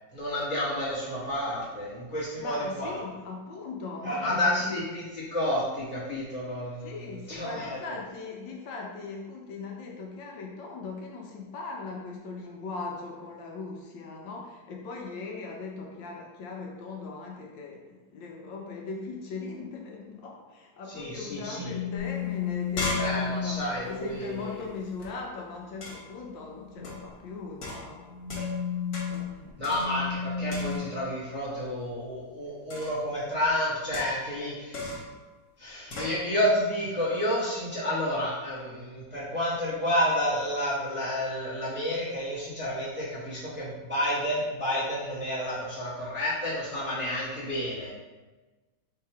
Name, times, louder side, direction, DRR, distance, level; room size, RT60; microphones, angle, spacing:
voice 1, 0.1-3.0 4.0-6.9 7.3-7.8 20.9-21.7 22.9-24.5 29.6-35.0 35.6-47.9, left 1 dB, 5° right, -10 dB, 1.0 m, -30 dB
voice 2, 2.4-4.7 6.8-28.7 29.1-29.7, left 4 dB, 75° left, 0 dB, 1.3 m, -39 dB
sound 1, 21.6-23.7 26.7-27.1 27.9-30.8, left 7 dB, 80° right, 1.4 m, -33 dB
sound 2, 22.0-22.1 22.4-25.1 25.8-26.2 26.8-27.1 27.6-28.7 28.9-29.3 29.6-30.2 30.5-31.1 32.7-33.1 33.9-34.4 34.7-35.2 35.9-36.2, left 1 dB, 55° left, 1.5 m, -37 dB
3.9 x 2.8 x 4.7 m, 1.2 s
omnidirectional pair, 2.1 m